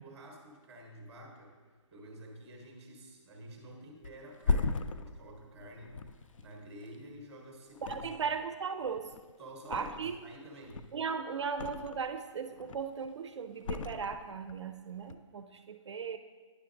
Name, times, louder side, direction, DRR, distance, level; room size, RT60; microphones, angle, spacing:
voice 1, 0.0-1.6 1.9-8.1 9.4-10.8, right 1 dB, 10° right, 1 dB, 0.8 m, -50 dB
Thump thud, 4.0-7.3 7.7-8.5 8.8-10.3 10.6-12.2 12.5-13.1 13.6-14.6 14.9-15.1, left 4 dB, 85° left, 0.4 m, -37 dB
voice 2, 7.8-9.2 9.7-10.2 10.9-16.2, right 6 dB, 60° right, 9 dB, 0.4 m, -37 dB
10.0 x 5.7 x 2.5 m, 1.5 s
hypercardioid pair, 170°, 16 cm